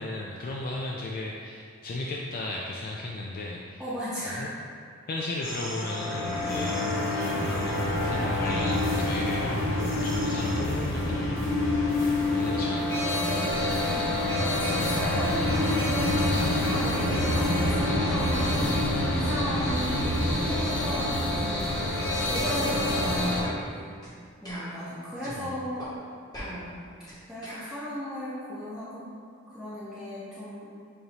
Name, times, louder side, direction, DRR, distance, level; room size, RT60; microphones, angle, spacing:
voice 1, 0.0-3.9 4.3-4.5 5.1-13.7 25.4-25.5, left 2 dB, 45° left, -2 dB, 0.3 m, -36 dB
voice 2, 3.8-4.5 13.9-23.9 24.4-25.9 26.4-26.7 27.3-29.1 29.5-30.7, equal, ahead, -14 dB, 0.8 m, -36 dB
sound 1, 5.4-23.4, left 1 dB, 60° left, 0.8 m, -27 dB
sound 2, 22.1-22.3 22.8-23.0 23.4-23.6 24.0-24.2 24.4-25.4 25.8-25.9 26.3-27.7, equal, 20° left, 1.1 m, -41 dB
6.6 x 2.7 x 3.0 m, 2.2 s
head